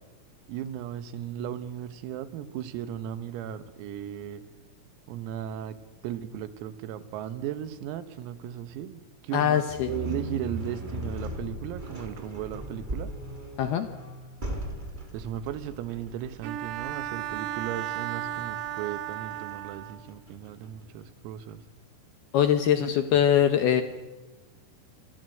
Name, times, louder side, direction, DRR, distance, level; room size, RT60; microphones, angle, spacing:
voice 1, 0.5-4.4 5.1-5.8 6.0-13.1 15.1-21.6, right 11 dB, 85° right, 12 dB, 4.1 m, -36 dB
voice 2, 9.3-9.9 13.6-13.9 22.3-23.8, left 9 dB, 75° left, 8 dB, 2.4 m, -22 dB
sound 1, 9.7-20.8, equal, 10° right, 3.9 m, -38 dB
Bowed string instrument, 16.4-20.1, right 13 dB, 70° right, 2.9 m, -34 dB
26.5 x 26.5 x 7.9 m, 1.1 s
omnidirectional pair, 6.0 m